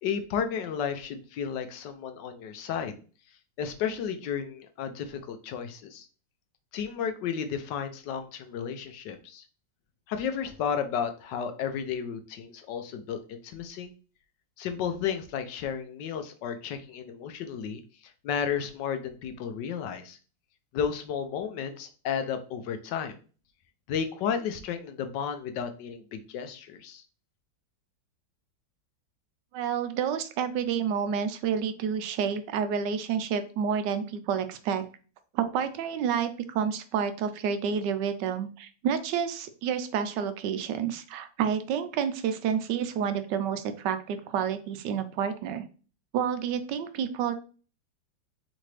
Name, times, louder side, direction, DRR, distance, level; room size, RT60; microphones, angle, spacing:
voice 1, 0.0-3.0 3.6-6.1 6.7-9.4 10.1-13.9 14.6-20.2 20.7-23.2 23.9-27.0, left 7 dB, 75° left, 8 dB, 1.2 m, -33 dB
voice 2, 29.5-34.8 35.3-45.6 46.1-47.3, right 7 dB, 75° right, 10 dB, 1.2 m, -29 dB
4.3 x 3.8 x 3.2 m, 0.37 s
omnidirectional pair, 2.0 m